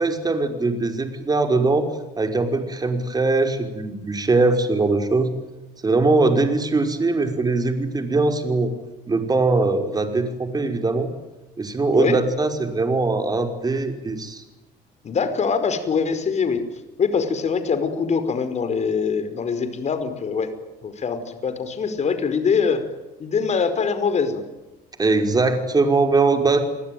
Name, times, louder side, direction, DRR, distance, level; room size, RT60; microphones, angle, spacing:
voice 1, 0.0-5.3 5.8-8.7 9.1-11.1 11.6-14.4 25.0-26.6, right 3 dB, 25° right, 6 dB, 5.5 m, -21 dB
voice 2, 15.0-16.6 17.0-20.5 20.8-22.8 23.2-24.4, left 5 dB, 40° left, 10 dB, 5.1 m, -23 dB
29.5 x 20.5 x 9.5 m, 1.1 s
cardioid pair, 110°, 17 cm